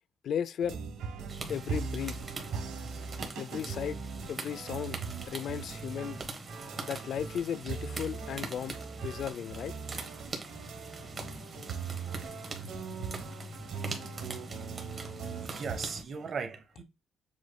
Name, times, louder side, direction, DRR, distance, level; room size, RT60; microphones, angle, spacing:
voice 1, 0.2-0.8 1.5-2.1 3.4-4.0 4.3-5.0 5.3-6.2 6.8-8.8 9.0-9.7, left 9 dB, 65° left, 0.3 m, -35 dB
sound 1, 0.6-16.0, right 5 dB, 90° right, 0.9 m, -40 dB
sound 2, 1.3-16.0, right 2 dB, 35° right, 1.3 m, -43 dB
voice 2, 15.0-16.8, right 5 dB, 50° right, 0.9 m, -39 dB
7.2 x 3.1 x 2.2 m
cardioid pair, 90°, 0 cm